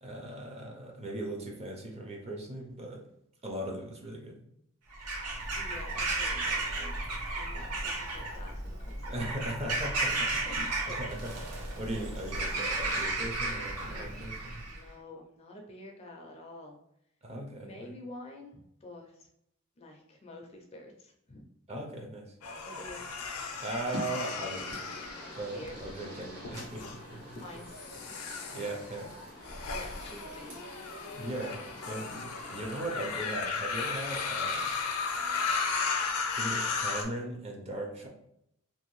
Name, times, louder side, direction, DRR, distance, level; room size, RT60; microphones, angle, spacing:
voice 1, 0.0-3.0 3.4-4.4 9.1-10.3 11.0-14.6 17.2-17.9 21.7-22.3 23.6-24.9 25.4-26.8 27.1-27.4 28.2-29.1 29.4-29.6 31.1-34.7 36.4-38.1, right 1 dB, 25° right, 1 dB, 0.5 m, -38 dB
Bird vocalization bird call bird song / Crow, 4.9-14.8, right 2 dB, 90° right, 0.8 m, -34 dB
voice 2, 5.5-7.1 7.4-9.3 9.6-11.0 11.8-12.1 13.8-14.4 14.7-16.8 17.6-19.3 19.8-21.4 22.6-23.0 25.5-25.8 27.3-28.2 29.7-30.6, left 2 dB, 25° left, 2 dB, 0.4 m, -48 dB
sound 1, 22.4-25.9 26.4-26.9 27.7-37.0, left 4 dB, 80° left, 0.5 m, -35 dB
sound 2, 23.8-33.2, equal, 70° right, 1.1 m, -46 dB
2.6 x 2.5 x 3.0 m, 0.77 s
head